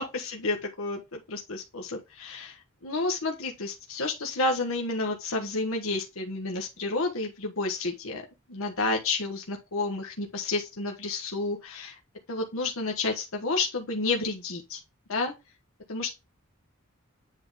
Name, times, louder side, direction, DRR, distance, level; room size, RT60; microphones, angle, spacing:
voice 1, 0.0-8.2 8.5-12.0 12.3-14.8 15.1-15.3 15.9-16.1, left 3 dB, 90° left, 1.3 m, -30 dB
9.6 x 3.8 x 3.4 m
head